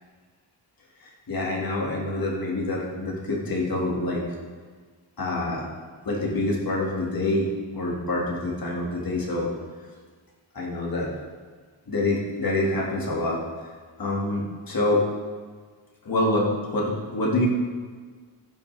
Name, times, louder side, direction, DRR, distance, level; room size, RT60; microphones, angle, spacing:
voice 1, 1.3-4.2 5.2-5.6 6.1-7.5 7.7-9.5 10.6-11.1 11.9-13.4 14.0-15.0 16.1-17.5, left 2 dB, 45° left, -4 dB, 2.1 m, -26 dB
14.5 x 6.0 x 3.4 m, 1.5 s
wide cardioid pair, 120°, 47 cm